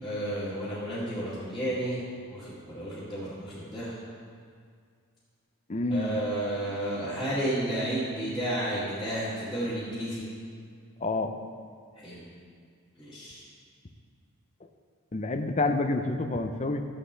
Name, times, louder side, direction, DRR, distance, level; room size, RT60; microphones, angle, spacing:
voice 1, 0.0-2.0 2.3-3.9 5.9-10.2 12.0-12.2 13.0-13.4, right 1 dB, ahead, -15 dB, 2.2 m, -32 dB
voice 2, 5.7-6.2 11.0-11.3 15.1-16.8, left 2 dB, 30° left, 6 dB, 0.6 m, -28 dB
14.5 x 7.6 x 3.3 m, 2.1 s
head